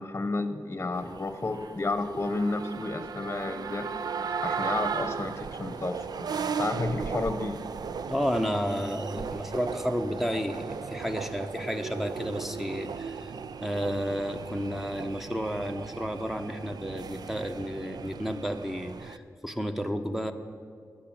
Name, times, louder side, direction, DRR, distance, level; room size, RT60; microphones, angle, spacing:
voice 1, 0.0-3.9 4.4-7.6, left 2 dB, 35° left, 9 dB, 0.9 m, -31 dB
sound 1, 0.9-19.2, right 6 dB, 80° right, 0.5 m, -36 dB
voice 2, 8.1-13.3 13.6-20.3, equal, 5° right, 7 dB, 0.9 m, -31 dB
13.0 x 10.0 x 8.9 m, 2.2 s
wide cardioid pair, 100°, 7 cm